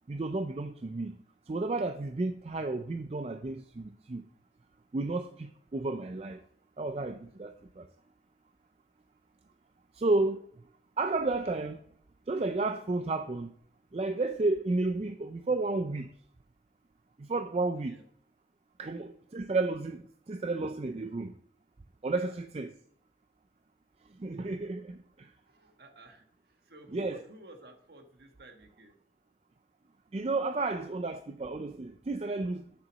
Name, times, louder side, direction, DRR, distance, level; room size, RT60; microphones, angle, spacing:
voice 1, 0.1-1.1 1.5-4.2 4.9-6.4 6.8-7.8 10.0-10.4 11.0-11.8 12.3-13.5 13.9-16.1 17.3-18.0 18.8-20.0 20.3-21.3 22.0-22.7 24.2-25.0 26.9-27.2 30.1-32.7, right 3 dB, 35° right, 0.4 m, -32 dB
voice 2, 7.2-7.6 17.9-18.0 18.8-19.0 22.2-22.3 25.4-28.9, right 1 dB, 60° right, 1.5 m, -54 dB
7.6 x 6.8 x 6.3 m
head